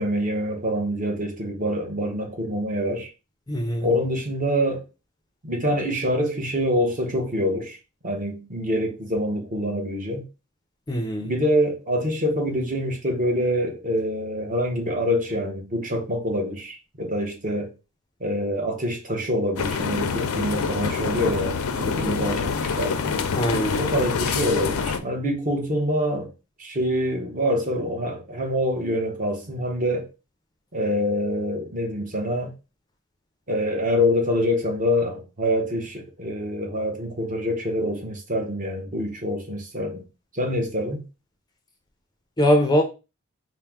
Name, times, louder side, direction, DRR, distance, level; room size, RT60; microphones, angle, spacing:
voice 1, 0.0-3.1 3.8-4.8 5.4-7.8 8.0-10.2 11.2-17.7 18.2-22.5 22.8-23.1 23.7-26.3 26.6-30.1 30.7-32.5 33.5-40.0 40.3-41.0, equal, 35° right, 0.8 m, -25 dB
voice 2, 3.5-3.9 10.9-11.3 23.3-23.8 42.4-42.8, equal, 20° left, 0.4 m, -21 dB
sound 1, 19.6-25.0, left 5 dB, 80° left, 0.5 m, -26 dB
4.3 x 2.0 x 3.4 m
head